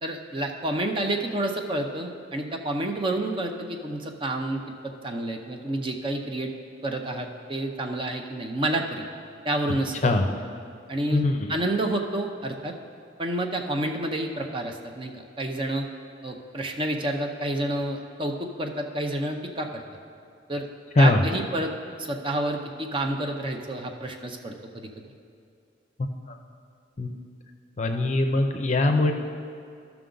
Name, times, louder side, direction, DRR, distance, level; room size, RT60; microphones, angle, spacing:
voice 1, 0.0-6.5 6.8-9.0 9.4-10.1 10.9-11.2 11.5-12.7 13.2-15.9 16.2-19.8 20.5-20.7 21.0-24.9, right 1 dB, 30° right, 3 dB, 0.6 m, -29 dB
voice 2, 27.8-29.1, left 2 dB, 40° left, 5 dB, 0.6 m, -21 dB
14.0 x 5.9 x 3.8 m, 2.4 s
head